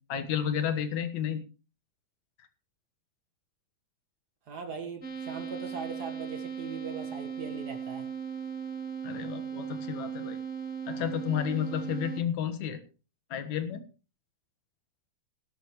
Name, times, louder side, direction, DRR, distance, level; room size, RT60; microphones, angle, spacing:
voice 1, 0.1-1.4 9.0-10.4 10.9-12.8 13.3-13.8, left 9 dB, 60° left, 10 dB, 2.4 m, -31 dB
voice 2, 4.5-8.1, right 5 dB, 75° right, 5 dB, 0.9 m, -40 dB
sound 1, 5.0-12.2, right 7 dB, 85° left, 0.6 m, -37 dB
17.0 x 13.0 x 3.1 m, 0.33 s
omnidirectional pair, 4.3 m